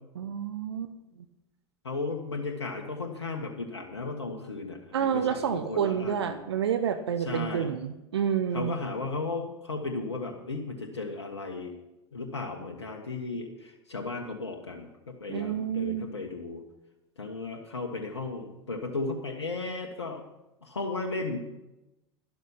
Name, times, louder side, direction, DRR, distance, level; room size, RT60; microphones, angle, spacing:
voice 1, 0.2-0.9 4.9-8.8 15.3-16.1, right 8 dB, 70° right, 10 dB, 0.8 m, -29 dB
voice 2, 1.8-6.3 7.2-7.7 8.5-11.7 12.1-14.9 15.2-16.6 17.2-20.2 20.6-21.4, left 3 dB, 80° left, 2 dB, 1.5 m, -35 dB
12.0 x 12.0 x 5.6 m, 0.96 s
figure-of-eight pair, 80°, 14 cm